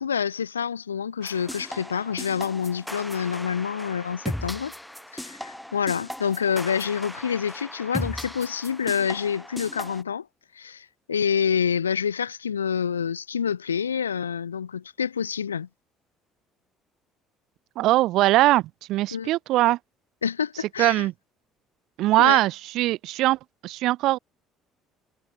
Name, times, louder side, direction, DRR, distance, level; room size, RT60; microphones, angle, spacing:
voice 1, 0.0-4.7 5.1-10.3 10.6-15.7 19.1-19.3 20.2-21.1 22.2-22.4, left 7 dB, 85° left, 0.8 m, -27 dB
sound 1, 1.2-10.0, left 1 dB, 5° left, 7.5 m, -37 dB
voice 2, 17.8-18.6 18.9-19.8 20.8-21.1 22.0-24.2, right 16 dB, 60° right, 0.8 m, -21 dB
figure-of-eight pair, 55°, 0 cm